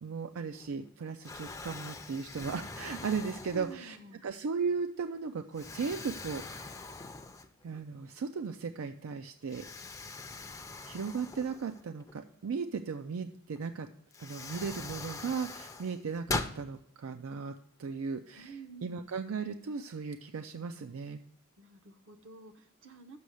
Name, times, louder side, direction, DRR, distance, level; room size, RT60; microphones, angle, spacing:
voice 1, 0.0-4.0 4.2-6.7 7.6-9.7 10.9-13.9 14.2-18.5 18.8-21.2, right 5 dB, 85° right, 8 dB, 0.4 m, -36 dB
Explosion, 0.5-0.9 1.2-4.1 4.7-4.8 5.5-7.8 8.2-8.3 9.5-12.1 13.6-13.7 14.1-16.6, left 3 dB, 15° left, 0.4 m, -42 dB
voice 2, 3.4-4.2 18.4-19.1 21.6-23.2, right 2 dB, 65° right, 10 dB, 0.8 m, -49 dB
6.9 x 6.1 x 6.4 m, 0.69 s
head